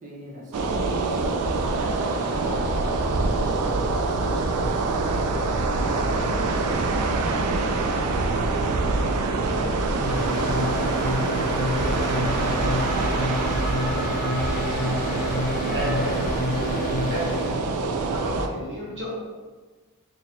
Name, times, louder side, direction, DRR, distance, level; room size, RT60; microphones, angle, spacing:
voice 1, 0.0-3.5 7.2-11.4 11.8-14.5 14.8-15.8, right 1 dB, 35° right, -3 dB, 0.8 m, -41 dB
sound 1, 0.5-18.5, right 3 dB, 85° right, 0.4 m, -25 dB
sound 2, 10.0-17.6, left 1 dB, 40° left, 0.5 m, -29 dB
sound 3, 11.8-16.9, equal, 5° right, 1.2 m, -35 dB
voice 2, 15.7-16.3 17.1-17.6 18.1-19.1, equal, 55° right, -5 dB, 1.1 m, -32 dB
2.9 x 2.7 x 4.2 m, 1.3 s
head